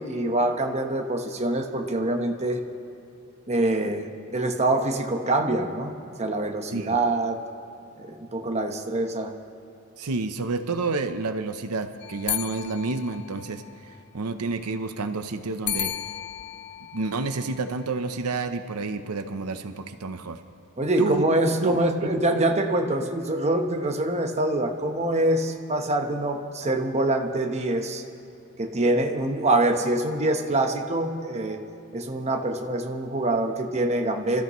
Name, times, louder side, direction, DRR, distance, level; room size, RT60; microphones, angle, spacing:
voice 1, 0.0-2.6 3.5-5.9 6.2-7.4 8.0-9.3 20.8-28.0 28.6-31.6 31.9-34.4, right 1 dB, 30° right, 3 dB, 1.1 m, -25 dB
voice 2, 10.0-13.6 14.1-15.9 16.9-20.4 21.0-21.3 21.6-21.9 22.4-22.5, right 3 dB, 85° right, 8 dB, 0.7 m, -29 dB
sound 1, 12.0-14.0 15.7-18.0, left 12 dB, 55° left, 0.5 m, -34 dB
27.5 x 14.0 x 3.1 m, 2.8 s
head